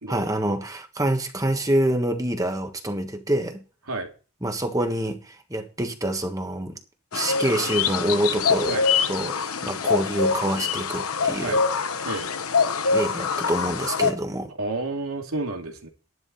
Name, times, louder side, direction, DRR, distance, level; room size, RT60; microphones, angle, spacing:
voice 1, 0.1-3.6 4.4-6.8 7.1-8.8 9.1-11.6 12.9-14.5, right 1 dB, 15° right, 1.5 m, -26 dB
sound 1, 7.1-14.1, left 5 dB, 90° left, 1.1 m, -24 dB
voice 2, 14.6-15.9, right 2 dB, 90° right, 2.8 m, -30 dB
12.0 x 11.0 x 4.2 m
head